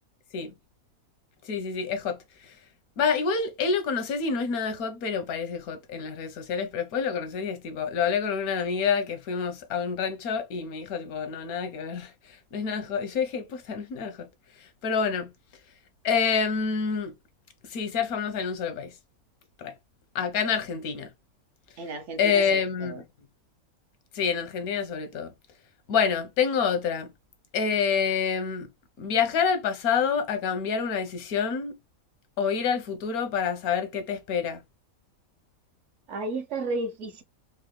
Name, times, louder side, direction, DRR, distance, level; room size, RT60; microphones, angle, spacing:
voice 1, 1.4-2.2 2.4-2.5 3.0-12.1 12.5-14.3 14.8-15.3 16.0-17.1 17.7-18.9 19.6-19.7 20.1-21.1 22.2-23.0 24.1-25.3 25.9-27.1 27.5-28.7 29.0-31.8 32.4-34.6, left 6 dB, 90° left, 1.3 m, -27 dB
voice 2, 21.8-23.0 36.1-37.2, right 2 dB, 60° right, 0.9 m, -33 dB
4.4 x 2.1 x 3.0 m
omnidirectional pair, 1.5 m